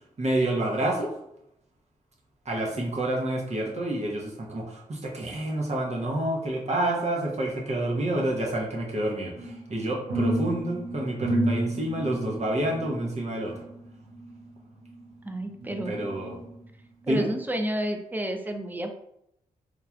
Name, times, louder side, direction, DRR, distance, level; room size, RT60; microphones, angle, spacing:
voice 1, 0.2-1.1 2.4-13.6 15.9-16.4 17.1-17.3, right 1 dB, 40° right, -2 dB, 0.8 m, -28 dB
sound 1, 9.3-15.1 15.6-16.7 17.2-17.4, right 1 dB, 80° right, 0.7 m, -32 dB
voice 2, 15.2-15.9 17.1-18.9, right 1 dB, 10° right, 5 dB, 0.4 m, -30 dB
3.1 x 2.3 x 2.4 m, 0.78 s
supercardioid pair, 45°, 17 cm